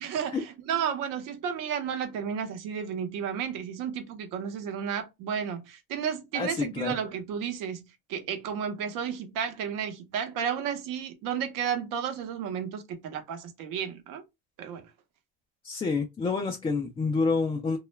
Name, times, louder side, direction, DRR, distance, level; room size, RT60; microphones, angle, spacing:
voice 1, 0.0-7.8 8.1-14.2 14.6-14.9, right 8 dB, 70° right, 0.8 m, -32 dB
voice 2, 6.3-6.9 15.6-17.8, left 4 dB, 15° left, 0.3 m, -28 dB
2.3 x 2.1 x 3.0 m
cardioid pair, 115°, 34 cm